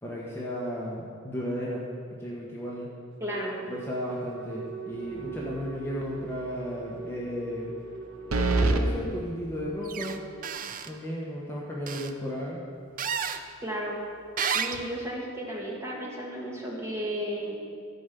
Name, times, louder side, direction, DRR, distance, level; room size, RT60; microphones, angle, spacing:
voice 1, 0.0-2.9 3.7-7.7 8.2-10.2 10.8-12.6, equal, 10° left, -5 dB, 1.3 m, -34 dB
voice 2, 3.2-3.6 13.6-14.0 14.5-17.6, equal, 15° right, -4 dB, 1.9 m, -33 dB
Wind instrument woodwind instrument, 3.3-9.4, right 7 dB, 60° right, 0.9 m, -42 dB
sound 1, 5.2-5.7 6.0-6.1 8.3-8.8, right 3 dB, 90° right, 0.8 m, -25 dB
sound 2, 9.9-10.2 10.4-10.9 11.9-12.1 13.0-13.4 14.4-14.9, right 7 dB, 40° right, 0.5 m, -31 dB
13.5 x 5.3 x 6.9 m, 2.2 s
head